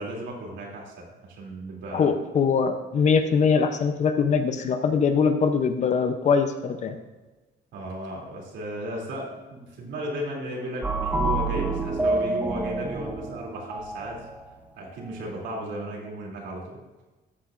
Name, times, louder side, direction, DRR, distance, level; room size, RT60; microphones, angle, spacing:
voice 1, 0.0-2.1 7.7-14.2 14.8-16.8, right 1 dB, 80° right, -3 dB, 2.8 m, -35 dB
voice 2, 1.9-7.0, left 5 dB, 40° left, 8 dB, 0.6 m, -22 dB
sound 1, 10.8-14.4, right 2 dB, 10° right, 0.5 m, -28 dB
13.5 x 8.6 x 2.5 m, 1.2 s
cardioid pair, 175°, 19 cm